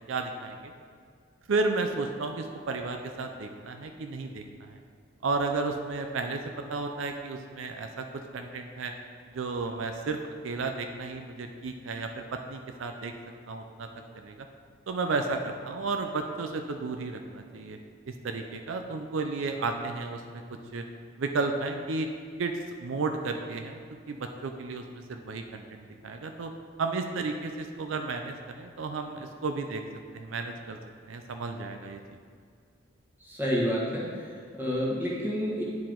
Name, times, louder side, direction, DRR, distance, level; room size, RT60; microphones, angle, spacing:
voice 1, 0.1-0.7 1.5-4.8 5.2-8.9 9.3-13.1 13.5-13.9 14.1-14.5 14.9-17.8 18.1-20.4 20.7-20.8 21.2-22.1 22.4-22.5 22.8-23.8 24.1-26.5 26.8-29.8 30.1-30.8 31.1-32.0, right 3 dB, 75° right, 5 dB, 0.5 m, -33 dB
voice 2, 33.2-35.6, equal, 10° right, -5 dB, 1.3 m, -29 dB
9.4 x 4.7 x 3.8 m, 2.1 s
head